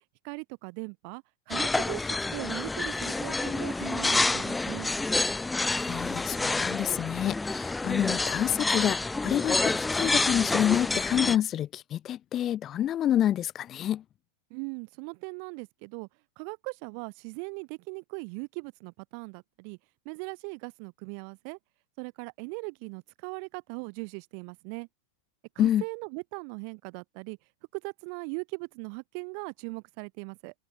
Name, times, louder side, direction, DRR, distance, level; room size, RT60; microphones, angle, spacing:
voice 1, 0.2-4.9 14.5-16.1 16.4-19.8 20.0-21.6 22.0-24.9 25.5-27.4 27.7-30.5, right 40 dB or more, 45° right, 4.7 m, -39 dB
sound 1, 1.5-11.4, left 3 dB, 10° left, 0.6 m, -28 dB
voice 2, 5.8-14.0 25.6-25.8, left 11 dB, 30° left, 2.0 m, -28 dB
figure-of-eight pair, 90°, 0 cm